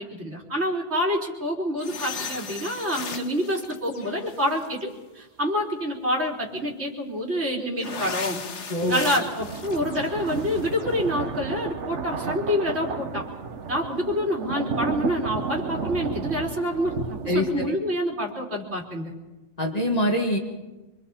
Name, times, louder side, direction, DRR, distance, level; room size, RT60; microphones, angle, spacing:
voice 1, 0.0-4.9 5.1-8.4 8.9-13.3 13.7-19.1, equal, 65° right, -3 dB, 4.1 m, -27 dB
sound 1, 1.8-4.9 7.8-10.9, left 5 dB, 80° left, 1.6 m, -37 dB
voice 2, 8.7-9.1 17.3-17.5 19.6-20.4, left 1 dB, 35° left, 0 dB, 2.3 m, -23 dB
sound 2, 8.7-17.7, right 5 dB, 80° right, 1.4 m, -33 dB
25.0 x 24.5 x 4.4 m, 1.1 s
omnidirectional pair, 1.2 m